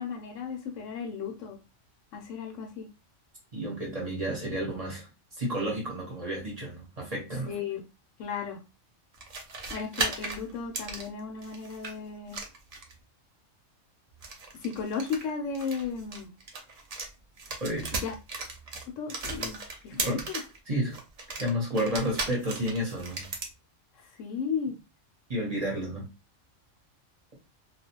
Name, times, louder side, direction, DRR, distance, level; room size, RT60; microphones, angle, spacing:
voice 1, 0.0-1.6 2.1-2.9 7.4-7.8 8.2-8.6 9.7-12.4 14.6-16.3 17.9-18.1 19.0-19.6 19.8-20.4 24.1-24.8, left 6 dB, 75° left, 3 dB, 0.9 m, -35 dB
voice 2, 3.5-5.1 5.4-7.6 17.6-17.9 19.9-20.2 20.7-21.0 21.4-23.3 25.3-26.1, equal, 35° right, -2 dB, 0.9 m, -31 dB
sound 1, 9.1-11.9 12.3-13.0 14.1-17.1 17.4-20.6 20.9-23.5, right 3 dB, 65° right, 0.3 m, -36 dB
2.4 x 2.1 x 2.8 m, 0.28 s
omnidirectional pair, 1.3 m